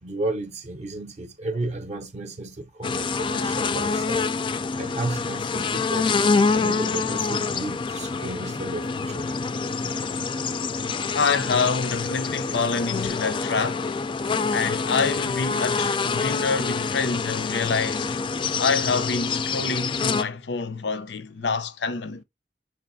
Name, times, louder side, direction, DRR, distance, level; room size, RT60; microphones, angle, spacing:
voice 1, 0.0-4.3 4.7-6.1 6.5-9.4 9.8-9.9, right 2 dB, 40° right, 0.5 m, -33 dB
sound 1, 2.8-20.2, left 4 dB, 30° left, 0.3 m, -26 dB
voice 2, 11.1-13.9 14.5-18.2 18.6-22.2, left 4 dB, 80° left, 0.6 m, -26 dB
6.6 x 2.9 x 2.6 m
head